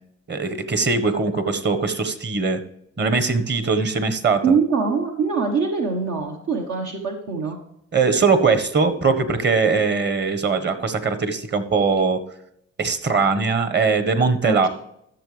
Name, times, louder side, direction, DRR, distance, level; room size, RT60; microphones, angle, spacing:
voice 1, 0.3-2.6 3.0-4.5 7.9-12.2 12.8-14.7, right 4 dB, 35° right, 9 dB, 1.4 m, -21 dB
voice 2, 4.4-7.6 14.4-14.7, right 5 dB, 75° right, 1 dB, 1.4 m, -23 dB
13.5 x 7.0 x 3.4 m, 0.73 s
cardioid pair, 90°, 30 cm